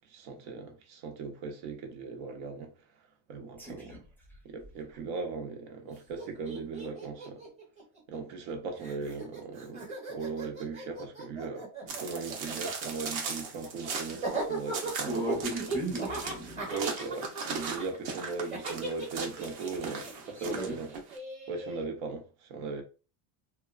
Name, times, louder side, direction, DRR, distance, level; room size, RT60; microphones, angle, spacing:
voice 1, 0.1-2.7 3.3-3.9 4.4-7.4 8.1-15.2 16.7-20.9 21.5-22.8, right 4 dB, 85° right, 0.8 m, -38 dB
voice 2, 3.6-4.0 15.1-16.7 20.3-20.8, right 1 dB, 5° left, 0.4 m, -36 dB
Laughter, 5.9-6.0 6.2-8.5 8.8-21.8, right 3 dB, 15° right, 0.8 m, -38 dB
sound 1, 11.9-21.2, right 5 dB, 50° right, 0.7 m, -38 dB
2.8 x 2.2 x 2.3 m
cardioid pair, 170°, 41 cm